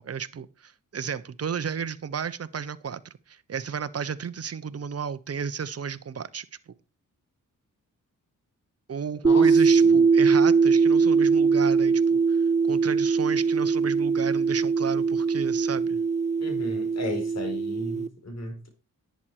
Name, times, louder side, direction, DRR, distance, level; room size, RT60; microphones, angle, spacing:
voice 1, 0.0-6.7 8.9-16.0, right 6 dB, 45° right, 1.0 m, -33 dB
voice 2, 9.2-10.0 16.4-18.7, left 2 dB, 50° left, 4.7 m, -35 dB
sound 1, 9.2-18.1, right 5 dB, 20° right, 0.6 m, -21 dB
10.5 x 8.8 x 4.9 m
cardioid pair, 70°, 33 cm